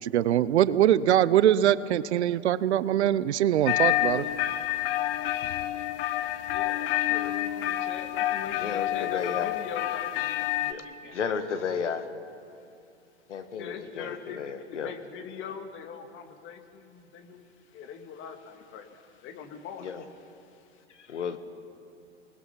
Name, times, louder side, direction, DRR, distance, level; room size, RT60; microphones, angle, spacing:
voice 1, 0.0-4.2, right 11 dB, 70° right, 17 dB, 0.8 m, -23 dB
sound 1, 3.7-10.7, left 14 dB, 50° left, 1.0 m, -28 dB
voice 2, 6.5-11.4 13.5-20.1 20.4-20.8, left 6 dB, 35° left, 6 dB, 2.2 m, -42 dB
voice 3, 8.5-9.5 10.7-10.8 11.1-12.1 13.3-14.9 19.8-20.0 20.9-21.4, left 6 dB, 75° left, 9 dB, 1.7 m, -33 dB
28.0 x 20.0 x 5.8 m, 2.6 s
hypercardioid pair, 110°, 35 cm